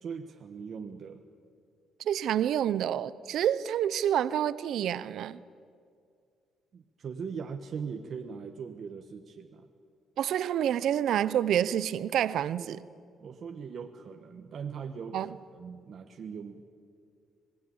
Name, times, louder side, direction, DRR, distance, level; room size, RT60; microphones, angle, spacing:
voice 1, 0.0-1.2 6.7-9.7 12.6-12.7 13.2-16.6, right 6 dB, 50° right, 4 dB, 1.3 m, -40 dB
voice 2, 2.0-5.4 10.2-12.8 15.1-15.3, right 10 dB, 75° right, 16 dB, 0.7 m, -28 dB
26.0 x 19.5 x 8.8 m, 2.3 s
cardioid pair, 120°, 0 cm